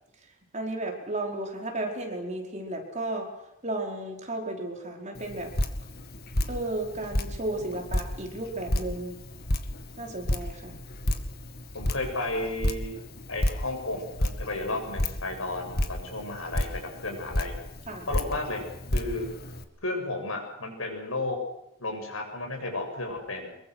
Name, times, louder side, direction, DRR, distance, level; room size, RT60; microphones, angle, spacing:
voice 1, 0.5-3.3 3.6-5.5 6.5-9.2 10.0-10.8 17.9-18.1, right 2 dB, 35° right, 1 dB, 4.7 m, -33 dB
Drip, 5.1-19.6, left 1 dB, 45° left, 2.0 m, -32 dB
voice 2, 11.7-13.0 13.3-17.5 18.1-18.6 18.9-19.3 19.8-21.4 21.8-23.6, left 2 dB, 75° left, 3 dB, 7.9 m, -33 dB
26.0 x 23.0 x 6.4 m, 0.84 s
head